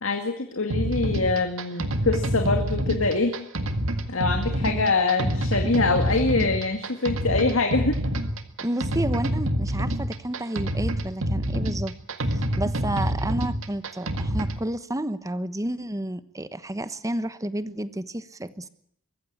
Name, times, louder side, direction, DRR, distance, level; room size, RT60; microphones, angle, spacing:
voice 1, 0.0-3.3 4.1-8.0, left 3 dB, 80° left, 5 dB, 2.1 m, -24 dB
sound 1, 0.7-14.6, equal, 75° right, 1.9 m, -27 dB
voice 2, 4.6-4.9 8.6-12.0 12.3-18.7, right 1 dB, 15° right, 13 dB, 1.1 m, -31 dB
22.5 x 15.0 x 8.8 m, 0.71 s
head